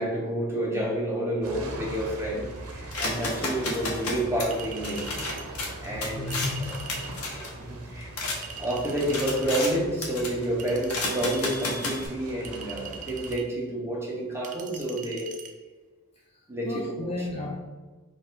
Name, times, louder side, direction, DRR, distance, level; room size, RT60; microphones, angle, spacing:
voice 1, 0.0-5.1 5.8-6.7 7.3-8.1 8.6-15.3 16.5-17.3, right 1 dB, 10° right, -3 dB, 0.9 m, -29 dB
sound 1, 1.4-13.4, right 2 dB, 75° right, 0.7 m, -41 dB
sound 2, 2.9-8.4 8.8-9.7 10.0-10.5 10.9-12.1, left 2 dB, 75° left, 1.0 m, -33 dB
Chink clink, 4.5-5.5 6.3-7.2 8.4-9.7 10.6-11.8 12.4-13.5 14.4-15.5, right 6 dB, 35° right, 0.5 m, -42 dB
voice 2, 5.9-7.3 16.6-17.6, left 2 dB, 25° left, -2 dB, 0.4 m, -34 dB
4.6 x 2.6 x 3.6 m, 1.3 s
head